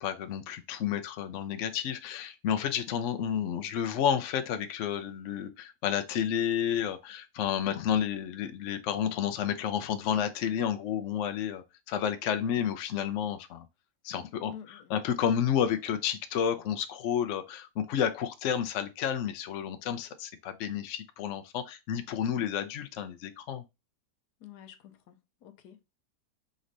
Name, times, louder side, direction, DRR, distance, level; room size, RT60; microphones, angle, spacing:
voice 1, 0.0-13.7 14.0-23.6, left 9 dB, 65° left, 0.8 m, -31 dB
voice 2, 14.5-15.0 24.4-25.9, left 10 dB, 85° left, 1.2 m, -50 dB
5.2 x 3.1 x 2.6 m
omnidirectional pair, 1.7 m